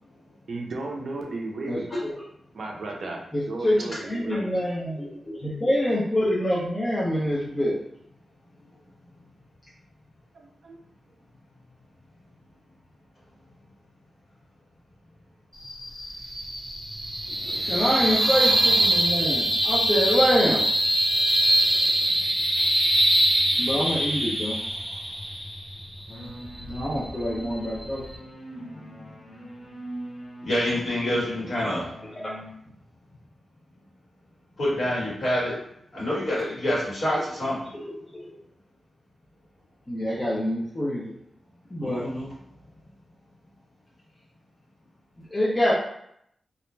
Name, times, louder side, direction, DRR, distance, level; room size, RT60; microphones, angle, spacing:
voice 1, 0.5-1.9 2.5-3.2 3.5-4.5 10.3-10.8 22.6-22.7, right 2 dB, 55° right, 1 dB, 0.4 m, -34 dB
voice 2, 1.7-2.1 3.3-7.8 17.7-20.6 23.6-24.6 26.7-28.0 32.2-32.3 37.7-37.8 38.3-38.4 39.9-41.1 41.7-42.0 45.3-45.7, equal, 20° left, -7 dB, 0.5 m, -26 dB
sound 1, 15.5-28.2, right 1 dB, 15° right, 0.7 m, -24 dB
sound 2, 26.1-32.5, right 1 dB, 70° left, 0.7 m, -42 dB
voice 3, 30.4-31.9 34.6-35.5 35.9-37.7 41.8-42.3, left 1 dB, 50° left, -8 dB, 1.3 m, -27 dB
2.4 x 2.1 x 3.1 m, 0.71 s
wide cardioid pair, 145°, 0 cm